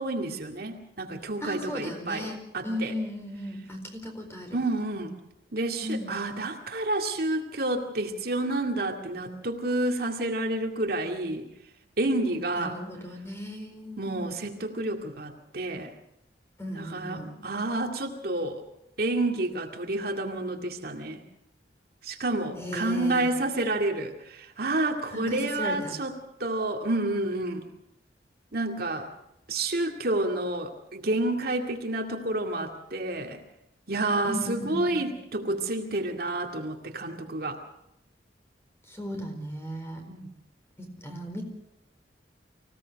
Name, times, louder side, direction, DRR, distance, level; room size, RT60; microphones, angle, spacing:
voice 1, 0.0-2.9 4.5-5.2 5.5-11.5 12.0-12.8 14.0-15.9 16.7-18.6 19.0-21.2 22.0-27.7 28.5-29.1 29.5-33.4 33.9-37.6 40.1-40.3, right 2 dB, 60° right, 3 dB, 2.2 m, -29 dB
voice 2, 1.4-2.4 2.6-4.6 5.8-6.1 12.6-14.2 16.6-17.4 22.6-23.4 25.1-25.9 34.2-35.0 38.9-40.0 40.8-41.4, equal, 15° left, 4 dB, 4.3 m, -36 dB
25.0 x 17.0 x 6.5 m, 0.83 s
head